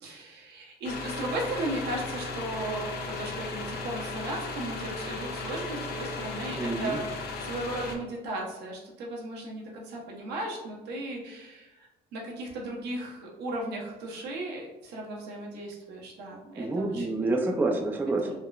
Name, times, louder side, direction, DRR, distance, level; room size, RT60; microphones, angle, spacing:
voice 1, 0.0-17.2 18.2-18.3, right 1 dB, 80° right, -2 dB, 0.8 m, -36 dB
sound 1, 0.8-8.0, left 3 dB, 65° left, 0.5 m, -36 dB
voice 2, 6.5-7.0 16.6-18.3, right 2 dB, 10° right, 2 dB, 0.3 m, -28 dB
3.6 x 2.1 x 2.3 m, 1.0 s
cardioid pair, 110°, 17 cm